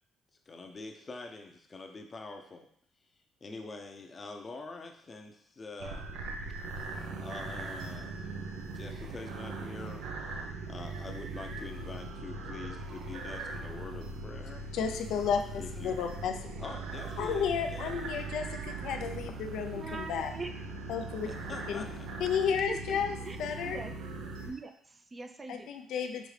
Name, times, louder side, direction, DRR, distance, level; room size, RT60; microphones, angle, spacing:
voice 1, 0.5-2.7 3.4-6.2 7.2-8.4 8.6-14.6 15.6-16.1 16.6-18.3 21.2-22.1, left 3 dB, 30° left, 4 dB, 0.6 m, -45 dB
sound 1, 5.8-24.5, right 3 dB, 85° right, 0.6 m, -40 dB
voice 2, 14.7-16.3 17.2-20.3 20.9-21.3 21.7-21.8 22.2-23.1 23.4-23.8 25.5-26.3, left 7 dB, 75° left, 5 dB, 0.4 m, -32 dB
voice 3, 19.8-20.5 22.5-23.0 23.2-23.4 23.6-23.9 24.4-25.7, right 3 dB, 25° right, 6 dB, 0.4 m, -41 dB
5.1 x 2.7 x 3.2 m, 0.63 s
cardioid pair, 100°, 0 cm